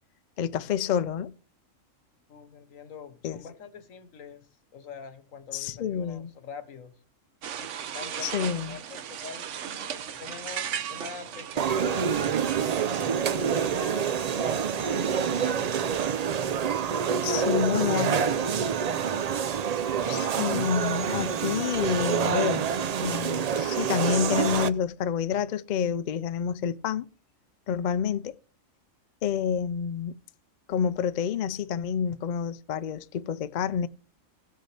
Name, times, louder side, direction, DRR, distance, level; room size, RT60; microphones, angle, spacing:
voice 1, 0.4-1.3 3.2-3.4 5.5-6.3 8.2-8.8 17.2-18.3 20.1-22.6 23.0-27.1 27.7-28.3 29.2-30.1 30.7-33.9, left 8 dB, 65° left, 0.4 m, -28 dB
voice 2, 2.3-6.9 7.6-9.5 9.8-12.5 13.0-15.8 17.3-18.1 18.5-18.7, left 6 dB, 85° left, 1.4 m, -44 dB
sound 1, 7.4-24.0, right 9 dB, 70° right, 1.0 m, -40 dB
sound 2, 11.6-24.7, right 7 dB, 85° right, 0.3 m, -27 dB
16.5 x 6.5 x 3.3 m
omnidirectional pair, 1.3 m